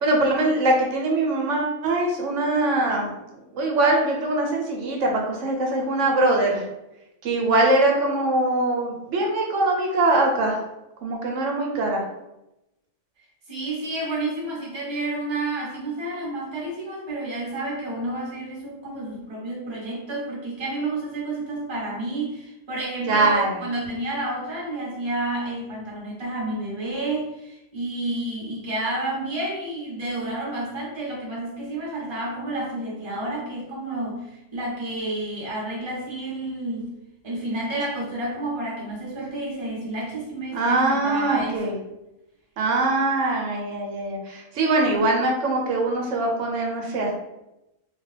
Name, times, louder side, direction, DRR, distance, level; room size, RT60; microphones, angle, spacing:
voice 1, 0.0-3.1 3.5-6.6 7.2-10.6 11.0-12.0 23.1-23.6 40.5-41.7 42.6-47.1, right 2 dB, 70° right, 0 dB, 1.0 m, -22 dB
voice 2, 13.5-36.9 37.2-41.6, right 2 dB, 25° right, -4 dB, 0.7 m, -30 dB
2.5 x 2.3 x 3.2 m, 0.90 s
omnidirectional pair, 1.4 m